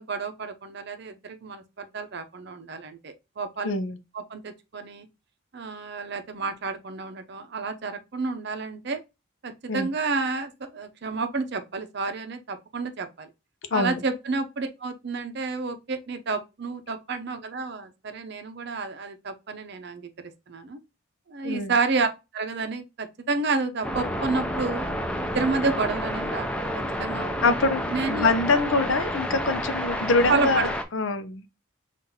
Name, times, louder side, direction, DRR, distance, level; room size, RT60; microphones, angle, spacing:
voice 1, 0.0-3.7 4.1-5.1 5.5-9.0 9.4-13.3 13.7-20.1 20.5-20.8 21.3-24.8 25.2-26.7 27.0-27.4 27.9-28.3 30.3-30.7, right 4 dB, 55° right, 0.6 m, -30 dB
voice 2, 3.6-4.0 9.7-9.9 13.7-14.0 21.4-21.7 27.4-31.4, left 3 dB, 65° left, 0.6 m, -24 dB
sound 1, 23.8-30.8, equal, 5° left, 0.4 m, -30 dB
5.5 x 2.5 x 2.8 m
head